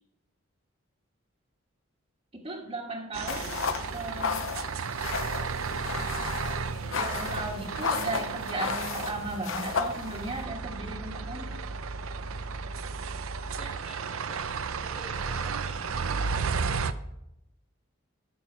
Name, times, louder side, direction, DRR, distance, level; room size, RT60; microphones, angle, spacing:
voice 1, 2.4-3.5 3.9-4.5 6.9-11.6, right 2 dB, 30° right, -3 dB, 1.4 m, -36 dB
sound 1, 3.1-16.9, right 5 dB, 80° right, 0.6 m, -33 dB
sound 2, 3.3-10.4, left 5 dB, 65° left, 0.7 m, -34 dB
voice 2, 13.6-14.5 14.8-16.5, left 1 dB, 20° left, -3 dB, 1.7 m, -49 dB
13.5 x 6.2 x 4.6 m, 0.81 s
head